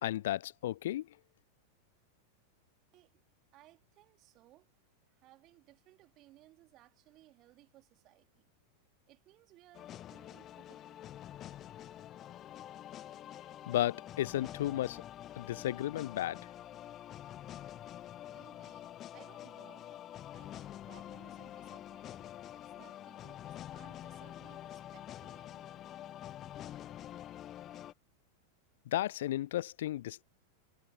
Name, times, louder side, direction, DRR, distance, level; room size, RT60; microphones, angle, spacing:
voice 1, 0.0-1.2 13.7-15.0 15.4-16.5 28.9-30.2, left 13 dB, 55° left, 0.3 m, -34 dB
voice 2, 3.5-4.8 5.1-8.5 9.1-11.0 18.3-25.9, right 16 dB, 35° right, 3.9 m, -62 dB
sound 1, 9.7-27.9, left 12 dB, 30° left, 1.5 m, -47 dB
figure-of-eight pair, 90°, 0 cm